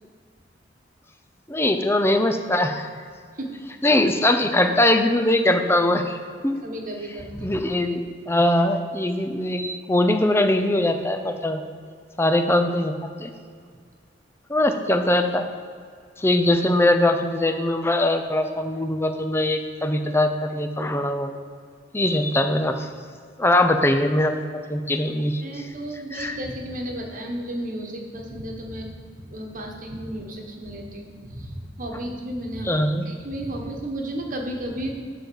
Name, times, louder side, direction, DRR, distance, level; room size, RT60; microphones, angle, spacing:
voice 1, 1.5-2.9 3.8-6.2 6.4-6.6 7.4-8.0 8.3-11.6 12.2-12.9 13.2-13.3 14.5-15.4 16.2-21.3 21.9-22.9 23.4-25.7 26.1-26.4 32.6-33.0, left 1 dB, 15° left, 6 dB, 0.6 m, -21 dB
voice 2, 6.6-7.6 25.4-32.7 33.1-34.9, right 1 dB, 45° right, 2 dB, 1.3 m, -33 dB
12.0 x 4.0 x 6.9 m, 2.1 s
head